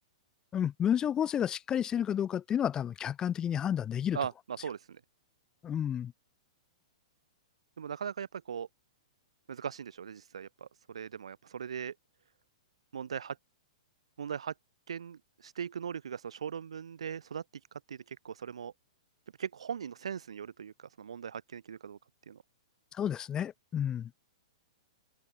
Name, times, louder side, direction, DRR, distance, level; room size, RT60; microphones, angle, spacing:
voice 1, 0.5-4.2 5.6-6.1 22.9-24.1, left 9 dB, 20° left, 3.4 m, -31 dB
voice 2, 4.1-5.0 7.8-8.7 9.5-11.9 12.9-13.4 14.2-14.5 14.9-17.4 17.9-18.7 19.4-22.0 22.3-22.4, right 7 dB, 70° right, 5.5 m, -39 dB
figure-of-eight pair, 115°, 3 cm